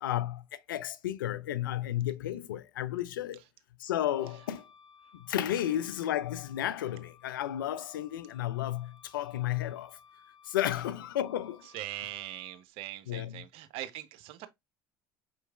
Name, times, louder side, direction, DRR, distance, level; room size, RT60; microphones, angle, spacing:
voice 1, 0.0-3.4 3.8-4.6 5.3-10.0 10.4-11.6 13.1-13.4, left 12 dB, 85° left, 0.4 m, -33 dB
Wind instrument woodwind instrument, 3.8-12.6, left 7 dB, 40° left, 2.5 m, -59 dB
voice 2, 11.7-14.5, right 14 dB, 65° right, 0.6 m, -41 dB
5.3 x 3.0 x 2.2 m
hypercardioid pair, 65°, 11 cm